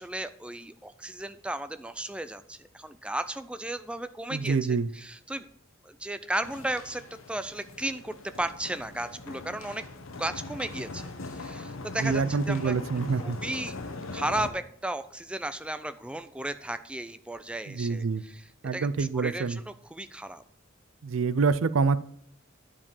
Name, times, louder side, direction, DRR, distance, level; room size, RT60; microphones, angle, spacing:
voice 1, 0.0-4.6 4.9-5.5 5.8-9.8 10.2-12.7 13.2-13.8 14.1-18.4 18.7-19.6 19.9-20.4, right 1 dB, 5° right, 11 dB, 0.4 m, -35 dB
voice 2, 4.3-4.9 12.0-13.4 17.7-18.2 18.6-19.6 21.0-22.0, right 4 dB, 75° right, 15 dB, 0.5 m, -26 dB
sound 1, 6.4-14.5, left 3 dB, 80° left, 0.9 m, -40 dB
9.9 x 4.9 x 5.5 m, 0.67 s
head